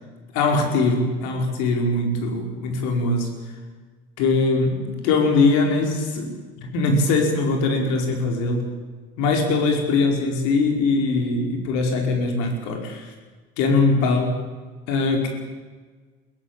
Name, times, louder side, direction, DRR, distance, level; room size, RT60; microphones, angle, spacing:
voice 1, 0.3-3.3 4.2-8.7 9.2-13.1 13.6-14.4 14.9-15.4, left 3 dB, 70° left, 3 dB, 5.0 m, -21 dB
22.5 x 16.5 x 8.8 m, 1.4 s
hypercardioid pair, 70°, 30 cm